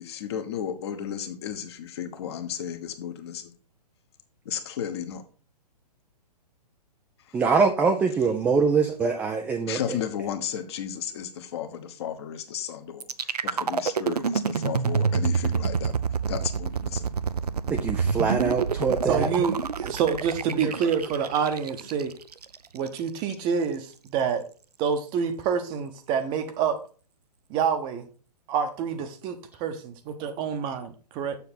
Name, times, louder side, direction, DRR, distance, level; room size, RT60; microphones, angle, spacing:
voice 1, 0.0-3.5 4.5-5.2 9.7-15.9 16.3-17.1, left 9 dB, 40° left, 7 dB, 1.1 m, -34 dB
voice 2, 7.3-10.0 17.7-19.3 20.6-20.7, right 5 dB, 5° right, 4 dB, 0.4 m, -24 dB
sound 1, 13.0-23.0, right 6 dB, 70° right, 0.6 m, -27 dB
voice 3, 19.1-22.1 22.7-24.4 24.8-26.8 27.5-28.1 28.5-31.4, right 7 dB, 20° right, 8 dB, 0.8 m, -27 dB
6.9 x 6.8 x 4.2 m, 0.37 s
figure-of-eight pair, 120°, 21 cm